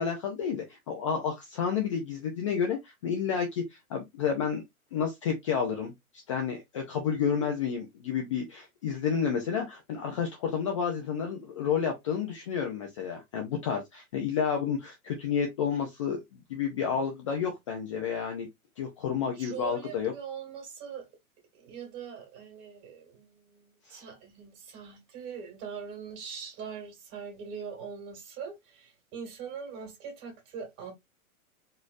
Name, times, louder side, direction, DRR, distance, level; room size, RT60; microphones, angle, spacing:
voice 1, 0.0-4.6 4.9-5.9 6.3-18.5 18.8-20.1 23.9-24.0, left 7 dB, 25° left, 0.4 m, -30 dB
voice 2, 19.3-21.1 21.5-30.9, right 6 dB, 35° right, 2.1 m, -42 dB
4.3 x 3.1 x 2.4 m
hypercardioid pair, 140°, 43 cm